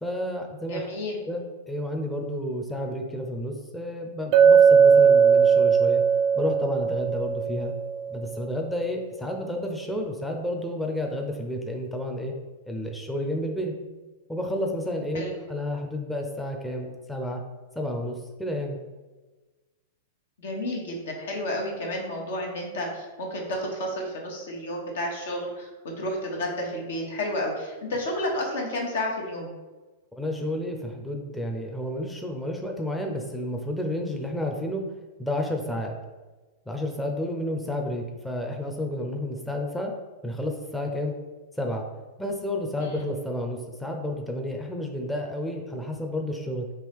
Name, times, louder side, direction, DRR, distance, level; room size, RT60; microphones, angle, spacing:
voice 1, 0.0-0.9 1.2-6.0 6.4-7.7 8.1-12.3 12.7-13.7 14.3-17.4 17.8-18.8 30.2-34.8 35.2-35.9 36.7-39.9 40.2-41.2 41.6-41.9 42.2-46.7, left 1 dB, 5° left, 1 dB, 0.5 m, -31 dB
voice 2, 0.7-1.2 15.1-15.3 20.4-25.7 26.0-29.5 42.8-43.0, left 1 dB, 75° left, 0 dB, 1.1 m, -31 dB
Chink clink, 4.3-8.3, right 6 dB, 45° right, 0.4 m, -18 dB
4.5 x 2.8 x 3.5 m, 1.2 s
hypercardioid pair, 115°, 0 cm